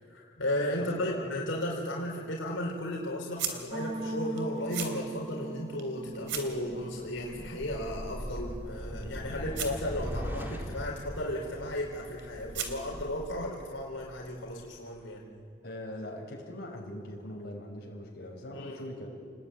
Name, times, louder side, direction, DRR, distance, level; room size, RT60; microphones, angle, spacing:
voice 1, 0.1-15.2 18.5-18.8, left 1 dB, 85° left, -1 dB, 4.4 m, -35 dB
voice 2, 0.8-1.4 9.3-9.4 15.6-19.1, left 1 dB, 55° left, -1 dB, 5.5 m, -41 dB
sound 1, 1.5-13.2, right 8 dB, 70° right, 3.0 m, -44 dB
sound 2, 3.7-9.9, right 1 dB, 25° right, 1.6 m, -41 dB
sound 3, 6.7-14.8, equal, 10° right, 2.1 m, -41 dB
29.5 x 20.0 x 9.3 m, 2.2 s
head